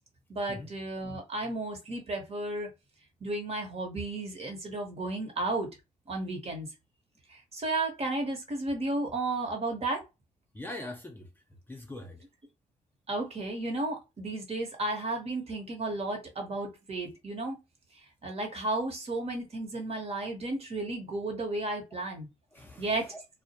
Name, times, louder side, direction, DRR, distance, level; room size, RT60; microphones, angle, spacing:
voice 1, 0.3-2.7 3.2-5.7 6.1-6.7 7.5-10.0 13.1-17.6 18.2-22.3 22.8-23.1, right 2 dB, 40° right, 1.0 m, -33 dB
voice 2, 10.5-12.2 22.5-23.2, left 1 dB, 10° left, 0.5 m, -43 dB
2.1 x 2.1 x 2.7 m
cardioid pair, 75°, 16 cm